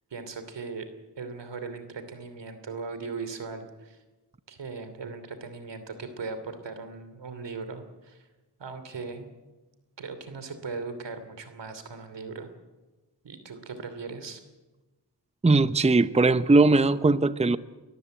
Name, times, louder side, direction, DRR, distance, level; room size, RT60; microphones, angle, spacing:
voice 1, 0.1-0.9 1.2-4.0 4.5-8.3 8.6-9.3 10.0-12.5 13.2-14.4, right 4 dB, 85° right, 10 dB, 2.9 m, -38 dB
voice 2, 15.4-17.6, right 3 dB, 15° right, 14 dB, 0.7 m, -20 dB
22.5 x 14.5 x 9.1 m, 1.2 s
wide cardioid pair, 70°, 42 cm